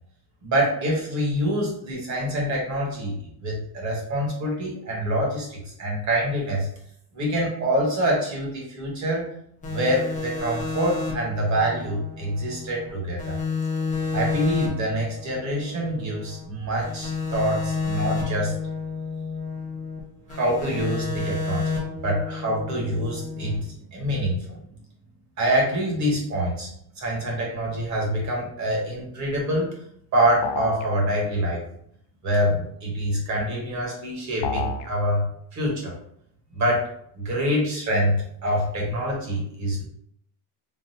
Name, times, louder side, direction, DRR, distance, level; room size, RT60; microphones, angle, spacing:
voice 1, 0.4-6.7 7.1-9.3 9.7-13.3 14.1-18.6 20.3-21.8 22.0-24.6 25.4-26.7 27.0-29.7 30.1-31.6 32.2-36.0 36.5-39.8, equal, 35° right, -3 dB, 1.3 m, -26 dB
sound 1, 9.6-12.9 13.2-16.4 16.8-20.0 20.3-23.6, left 4 dB, 15° left, 0.5 m, -31 dB
sound 2, 30.4-30.9 34.4-34.9, left 4 dB, 70° left, 0.6 m, -28 dB
3.8 x 2.2 x 2.7 m, 0.69 s
cardioid pair, 150°, 48 cm